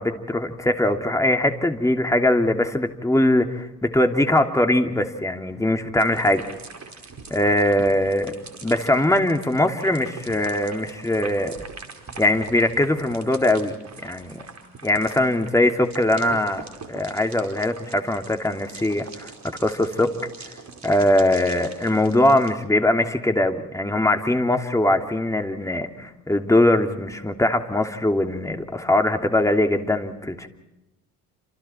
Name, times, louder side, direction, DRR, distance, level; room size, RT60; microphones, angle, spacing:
voice 1, 0.0-6.5 7.3-8.3 8.6-11.6 12.2-13.8 14.0-14.4 14.8-20.1 20.8-30.5, left 1 dB, 5° left, 4 dB, 3.0 m, -21 dB
sound 1, 6.0-22.5, right 4 dB, 35° right, 5.0 m, -42 dB
28.5 x 28.5 x 4.5 m, 0.94 s
hypercardioid pair, 65°, 48 cm